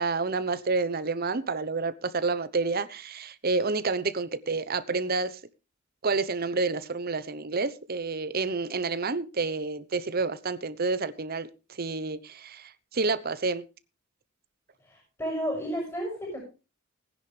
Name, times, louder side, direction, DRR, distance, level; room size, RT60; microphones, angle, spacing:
voice 1, 0.0-5.4 6.0-13.6, right 3 dB, 45° right, 14 dB, 0.9 m, -29 dB
voice 2, 14.8-16.4, equal, 15° left, -1 dB, 6.7 m, -32 dB
19.0 x 10.0 x 3.3 m, 0.31 s
head